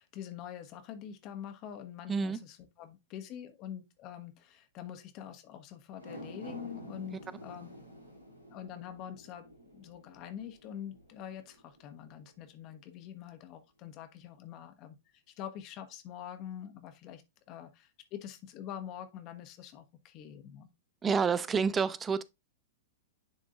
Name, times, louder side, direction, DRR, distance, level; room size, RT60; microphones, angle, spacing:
voice 1, 0.0-7.7 8.5-9.5 9.7-17.2 17.5-20.7, left 10 dB, 35° left, 1.0 m, -45 dB
sound 1, 5.9-12.4 12.8-12.9, equal, 85° right, 1.7 m, -50 dB
voice 2, 21.0-22.2, right 5 dB, 15° right, 0.4 m, -28 dB
10.5 x 3.7 x 2.4 m
figure-of-eight pair, 105°, 0 cm